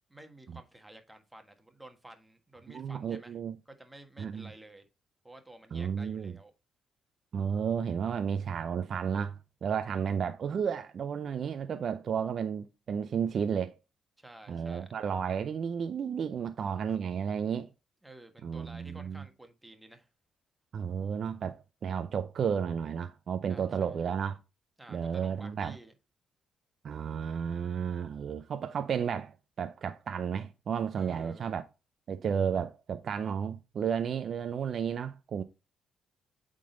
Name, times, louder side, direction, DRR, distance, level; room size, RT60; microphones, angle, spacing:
voice 1, 0.1-3.4 3.6-4.8 5.2-6.5 10.0-10.1 14.2-14.9 18.0-20.1 23.5-24.0 24.8-25.9 31.0-31.5, right 1 dB, 10° right, 1.4 m, -52 dB
voice 2, 2.7-3.5 4.2-4.5 5.7-6.3 7.3-13.8 14.5-17.7 18.4-19.2 20.7-24.3 24.9-25.8 26.8-31.6 32.1-35.4, right 7 dB, 55° right, 0.5 m, -32 dB
8.6 x 3.8 x 3.8 m
cardioid pair, 90°, 0 cm